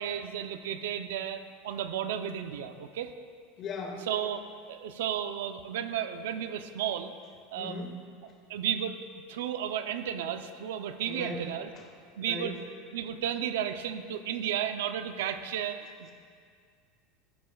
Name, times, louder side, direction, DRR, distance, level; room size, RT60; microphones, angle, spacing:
voice 1, 0.0-3.1 4.1-4.4 4.7-7.1 7.5-7.8 8.5-9.0 9.3-11.7 12.2-12.6 12.9-16.1, right 9 dB, 85° right, 9 dB, 0.6 m, -33 dB
voice 2, 3.6-4.1 7.6-8.0 11.1-11.5 11.8-11.9 12.2-12.6, left 3 dB, 45° left, 1 dB, 1.9 m, -38 dB
14.5 x 10.0 x 2.4 m, 2.1 s
supercardioid pair, 115°, 0 cm